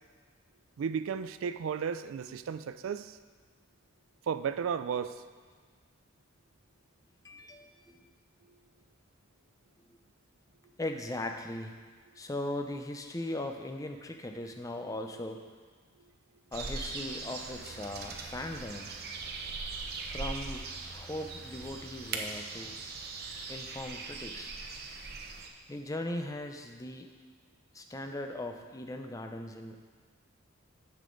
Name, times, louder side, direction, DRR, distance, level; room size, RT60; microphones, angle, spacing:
voice 1, 0.8-3.2 4.3-5.2, right 7 dB, 75° right, 12 dB, 0.3 m, -34 dB
voice 2, 7.2-8.1 9.9-10.0 10.8-11.8 12.2-15.4 16.5-18.9 20.1-22.8 23.5-24.5 25.7-27.1 27.7-29.9, left 1 dB, 15° left, 5 dB, 0.5 m, -39 dB
sound 1, 16.5-25.5, right 3 dB, 50° right, 0.8 m, -40 dB
9.9 x 6.8 x 3.9 m, 1.5 s
head